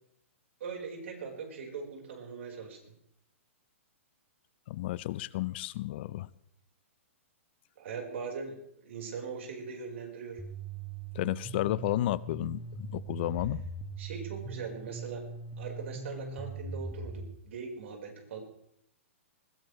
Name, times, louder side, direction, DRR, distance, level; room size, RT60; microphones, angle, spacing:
voice 1, 0.6-2.9 7.8-10.4 14.0-15.2 15.6-18.4, right 5 dB, 65° right, 2 dB, 4.6 m, -41 dB
voice 2, 4.7-6.3 11.1-13.6, left 15 dB, 50° left, 19 dB, 0.5 m, -32 dB
sound 1, 10.4-17.2, right 3 dB, ahead, 1.5 m, -41 dB
20.5 x 15.5 x 3.2 m, 0.73 s
hypercardioid pair, 125°, 7 cm